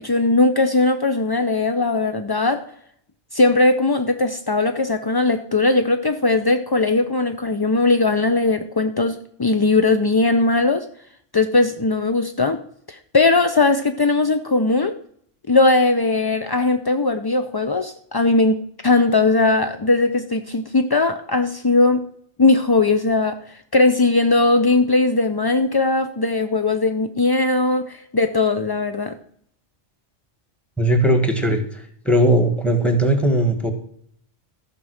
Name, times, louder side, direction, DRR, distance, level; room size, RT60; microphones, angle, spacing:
voice 1, 0.0-2.6 3.3-10.9 11.3-12.6 12.9-15.0 15.5-22.0 22.4-29.1, left 3 dB, 40° left, 7 dB, 0.3 m, -19 dB
voice 2, 30.8-33.7, right 1 dB, ahead, 6 dB, 1.5 m, -18 dB
14.5 x 5.3 x 6.3 m, 0.66 s
omnidirectional pair, 1.2 m